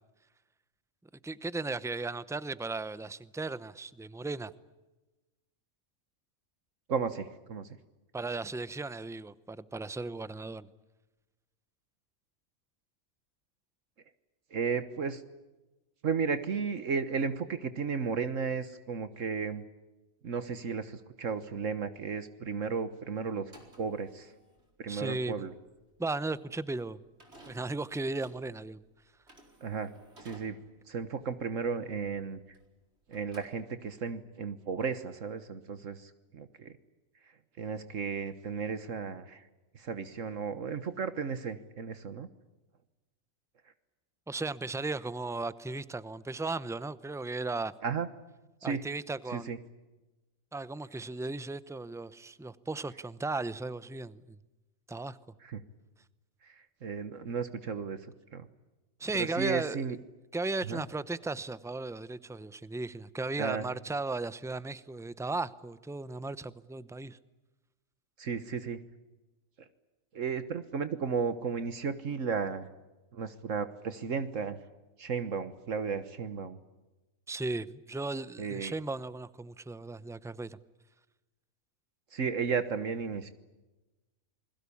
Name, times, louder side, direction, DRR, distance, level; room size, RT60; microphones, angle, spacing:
voice 1, 1.2-4.5 8.1-10.7 24.9-25.4 26.0-27.0 27.5-28.8 44.3-47.7 48.6-49.6 50.5-54.4 54.9-55.2 59.0-60.0 60.3-67.2 77.3-80.6, right 3 dB, 5° right, 0.5 m, -36 dB
voice 2, 6.9-7.7 14.5-15.2 16.0-19.6 20.2-23.5 23.8-24.3 24.8-25.5 29.6-29.9 30.2-30.6 30.9-32.4 33.1-36.7 37.6-39.4 39.7-42.3 47.8-48.1 48.6-48.8 49.3-49.6 55.4-55.6 56.4-58.0 58.3-58.5 59.1-60.0 60.6-60.8 63.4-63.7 68.2-68.8 70.1-72.7 73.1-74.6 75.0-76.6 78.4-78.7 82.1-83.3, right 5 dB, 70° right, 1.6 m, -34 dB
sound 1, 23.5-32.8 33.1-34.1, right 1 dB, 50° right, 5.0 m, -58 dB
29.0 x 21.5 x 8.6 m
omnidirectional pair, 1.4 m